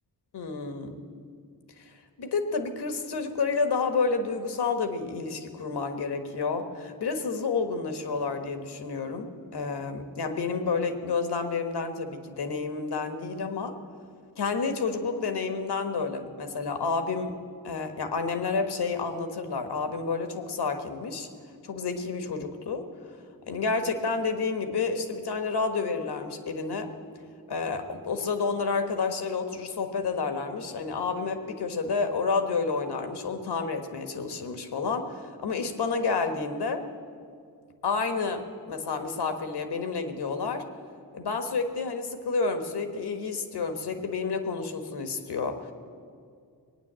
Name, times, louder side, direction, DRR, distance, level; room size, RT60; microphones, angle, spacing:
voice 1, 0.3-1.0 1.8-1.9 2.2-13.8 14.4-17.4 17.6-21.3 21.6-22.9 23.5-26.9 27.5-36.8 37.8-40.6 41.1-45.7, left 4 dB, 80° left, 7 dB, 1.5 m, -30 dB
20.0 x 9.4 x 7.6 m, 2.4 s
cardioid pair, 60°, 39 cm